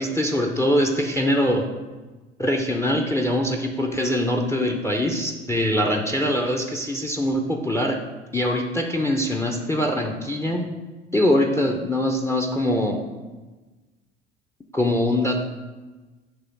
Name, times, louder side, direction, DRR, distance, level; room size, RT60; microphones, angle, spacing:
voice 1, 0.0-1.7 2.4-8.0 8.3-10.7 11.1-13.0 14.7-15.4, left 1 dB, 10° left, 3 dB, 0.6 m, -23 dB
6.1 x 3.1 x 5.7 m, 1.2 s
figure-of-eight pair, 65°, 35 cm